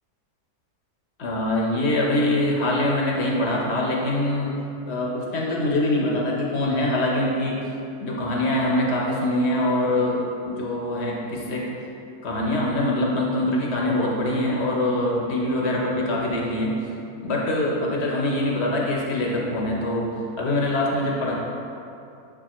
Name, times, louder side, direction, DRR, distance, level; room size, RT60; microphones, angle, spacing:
voice 1, 1.2-4.5 4.9-7.6 8.0-11.7 12.2-16.7 17.2-20.1 20.4-21.3, left 1 dB, 50° left, -3 dB, 0.9 m, -24 dB
6.7 x 4.8 x 3.0 m, 2.7 s
omnidirectional pair, 1.6 m